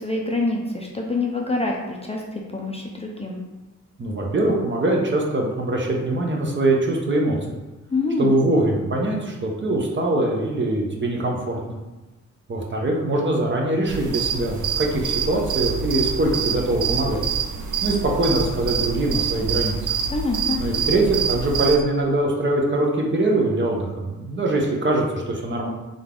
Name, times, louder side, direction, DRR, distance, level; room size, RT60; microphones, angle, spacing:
voice 1, 0.0-3.4 7.9-8.3 20.1-20.6, left 2 dB, 20° left, 0 dB, 0.5 m, -26 dB
voice 2, 4.0-7.6 8.2-11.6 12.5-17.2 17.8-19.9 20.6-25.7, right 2 dB, 40° right, -1 dB, 0.8 m, -22 dB
sound 1, 13.9-21.8, right 6 dB, 80° right, 0.6 m, -26 dB
3.9 x 3.5 x 3.7 m, 1.1 s
wide cardioid pair, 135°, 31 cm